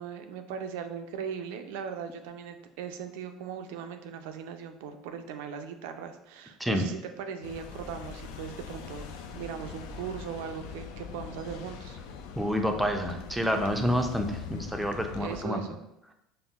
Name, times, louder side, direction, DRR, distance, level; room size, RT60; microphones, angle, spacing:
voice 1, 0.0-9.1 9.3-12.0 15.2-15.8, right 7 dB, 85° right, 7 dB, 0.3 m, -39 dB
sound 1, 7.4-15.5, left 6 dB, 85° left, 0.3 m, -42 dB
voice 2, 12.4-15.6, equal, 5° right, 4 dB, 0.4 m, -28 dB
5.3 x 2.0 x 2.3 m, 0.84 s
cardioid pair, 125°, 0 cm